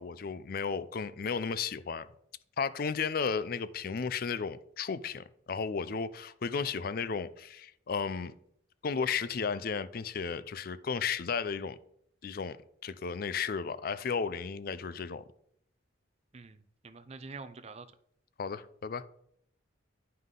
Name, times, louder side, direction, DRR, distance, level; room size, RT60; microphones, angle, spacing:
voice 1, 0.0-2.1 2.6-8.3 8.8-11.8 12.2-12.6 12.8-15.2 18.4-19.0, left 5 dB, 50° left, 0.4 m, -34 dB
voice 2, 16.3-17.9, right 4 dB, 35° right, 0.5 m, -46 dB
9.6 x 5.5 x 3.8 m
head